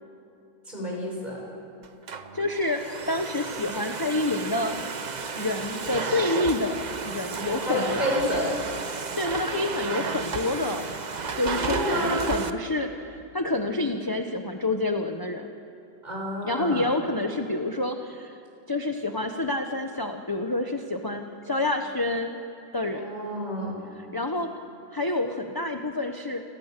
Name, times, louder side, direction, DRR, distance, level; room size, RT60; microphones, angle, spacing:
voice 1, 0.7-1.4 7.6-8.5 11.6-12.2 16.0-16.8 22.9-23.8, equal, 25° right, -3 dB, 6.8 m, -29 dB
Domestic sounds home sounds, 1.8-12.5, right 5 dB, 40° right, 0.6 m, -32 dB
voice 2, 2.3-2.8 3.1-4.8 5.4-8.0 9.2-10.9 11.3-15.5 16.4-18.4 18.7-22.4 22.7-23.1 24.0-24.5 24.9-26.4, left 2 dB, 20° left, 4 dB, 0.6 m, -28 dB
28.5 x 22.5 x 6.7 m, 2.7 s
omnidirectional pair, 1.9 m